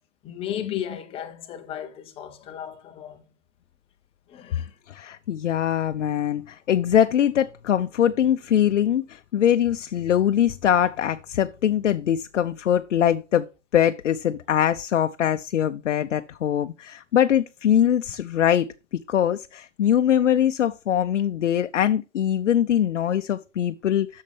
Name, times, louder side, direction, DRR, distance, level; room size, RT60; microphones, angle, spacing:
voice 1, 0.2-3.2 4.3-4.7, left 10 dB, 15° left, 0.8 m, -34 dB
voice 2, 4.9-13.5 13.7-18.7 19.1-24.2, left 10 dB, 85° left, 0.6 m, -22 dB
8.5 x 6.5 x 3.4 m
hypercardioid pair, 140°, 35 cm